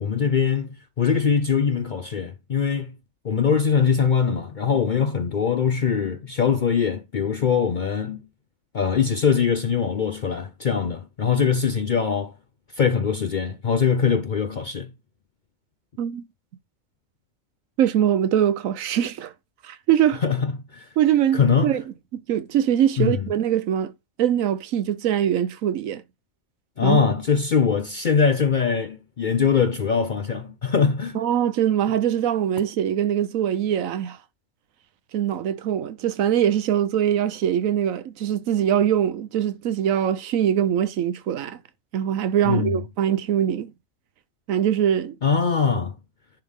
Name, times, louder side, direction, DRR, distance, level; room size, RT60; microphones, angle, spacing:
voice 1, 0.0-2.9 3.2-8.2 8.7-12.3 12.8-14.9 20.2-20.9 21.3-21.7 23.0-23.2 26.8-31.2 42.5-42.7 45.2-45.9, left 6 dB, 55° left, 0.5 m, -22 dB
voice 2, 17.8-19.3 19.6-20.2 21.0-21.8 22.1-23.9 24.2-26.0 26.8-27.0 31.1-34.2 35.1-41.6 41.9-43.7 44.5-45.2, right 10 dB, 80° right, 1.1 m, -22 dB
10.5 x 3.5 x 3.6 m
omnidirectional pair, 1.4 m